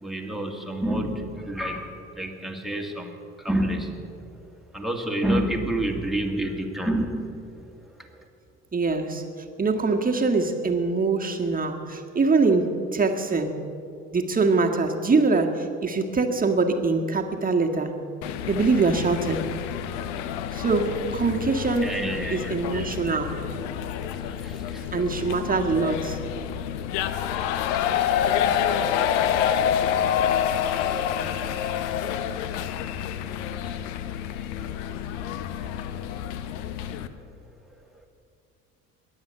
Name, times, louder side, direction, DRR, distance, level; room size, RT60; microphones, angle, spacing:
voice 1, 0.0-1.2 1.5-1.9 2.2-3.1 3.5-3.9 4.7-7.3 21.8-22.5, right 1 dB, ahead, 2 dB, 2.1 m, -27 dB
voice 2, 8.7-9.2 9.6-13.5 14.1-17.9 18.5-19.4 20.5-21.9 22.3-23.4 24.9-26.2, right 3 dB, 20° right, 3 dB, 1.8 m, -23 dB
sound 1, 18.2-37.1, left 9 dB, 65° left, 0.8 m, -28 dB
21.5 x 8.1 x 6.7 m, 2.5 s
figure-of-eight pair, 60°, 38 cm